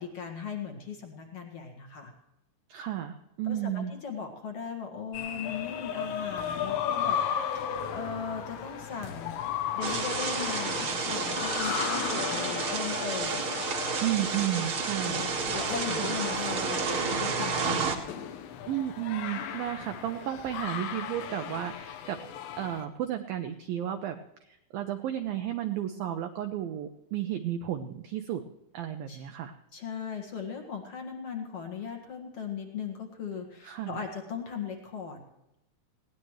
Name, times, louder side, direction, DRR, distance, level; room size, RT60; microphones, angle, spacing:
voice 1, 0.0-2.1 3.4-9.3 9.7-13.5 15.0-18.0 29.1-29.2 29.7-35.2, left 6 dB, 55° left, 3 dB, 1.7 m, -38 dB
voice 2, 2.7-3.9 14.0-15.2 16.0-16.1 18.7-22.2 22.6-28.4 28.7-29.5 33.6-34.0, right 11 dB, 90° right, 6 dB, 2.0 m, -33 dB
sound 1, 5.1-22.8, left 9 dB, 75° left, 3.2 m, -36 dB
sound 2, 9.8-18.0, right 5 dB, 55° right, 1.4 m, -31 dB
20.5 x 17.5 x 3.2 m, 0.88 s
omnidirectional pair, 5.3 m